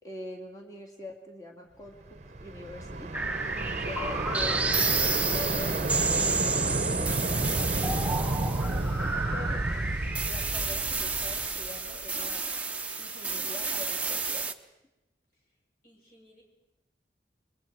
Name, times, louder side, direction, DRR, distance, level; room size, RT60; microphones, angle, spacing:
voice 1, 0.0-3.2 3.8-8.4 9.3-9.6 10.3-12.4 13.0-14.7, left 2 dB, 20° left, 0 dB, 2.3 m, -44 dB
sound 1, 2.1-12.1, right 2 dB, 40° right, 0.8 m, -31 dB
sound 2, 3.1-14.5, right 4 dB, 5° right, 0.7 m, -30 dB
Domestic sounds home sounds, 7.6-14.1, left 1 dB, 70° left, 7.8 m, -52 dB
voice 2, 9.1-9.5 15.3-15.6 15.8-16.4, equal, 50° left, -1 dB, 6.2 m, -60 dB
29.5 x 22.5 x 4.7 m, 0.97 s
head